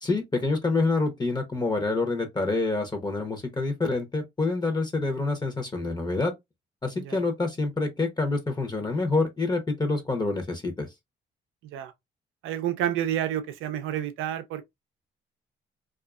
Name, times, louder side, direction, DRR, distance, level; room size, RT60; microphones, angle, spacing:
voice 1, 0.0-6.3 6.8-10.9, left 3 dB, 20° left, 0.7 m, -27 dB
voice 2, 12.4-14.6, right 11 dB, 90° right, 0.5 m, -29 dB
2.5 x 2.4 x 2.3 m
cardioid pair, 90°, 20 cm